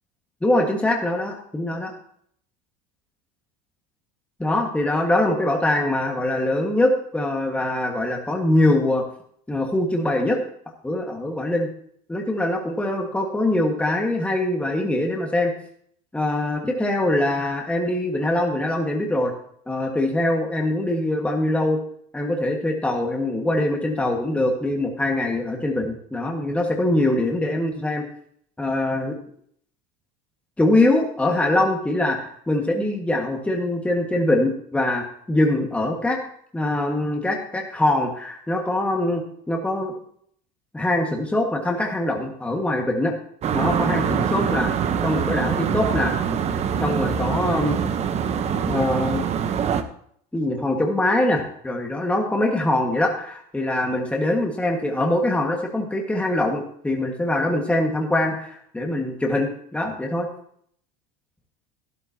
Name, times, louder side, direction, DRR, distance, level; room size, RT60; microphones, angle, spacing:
voice 1, 0.4-1.9 4.4-9.0 9.5-10.4 10.8-11.7 12.1-15.5 16.1-19.3 19.7-21.8 22.1-28.1 28.6-29.2 30.6-36.2 36.5-39.9 40.7-43.1 43.5-44.7 45.0-46.2 46.8-47.8 48.7-49.2 50.3-60.3, left 1 dB, 5° left, 1 dB, 1.6 m, -23 dB
sound 1, 43.4-49.8, right 7 dB, 35° right, 0.9 m, -24 dB
12.5 x 11.5 x 2.8 m, 0.65 s
supercardioid pair, 115°, 19 cm